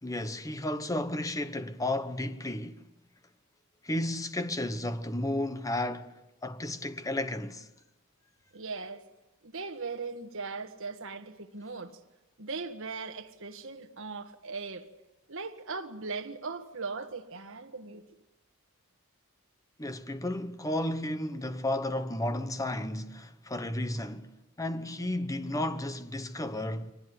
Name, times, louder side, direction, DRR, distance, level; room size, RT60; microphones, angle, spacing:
voice 1, 0.0-2.8 3.8-7.7 19.8-24.3 24.6-26.9, left 1 dB, 15° left, 1.0 m, -33 dB
voice 2, 8.5-9.0 9.4-12.0 12.4-14.9 15.3-18.0, right 4 dB, 65° right, 1.6 m, -39 dB
24.0 x 19.0 x 9.6 m
head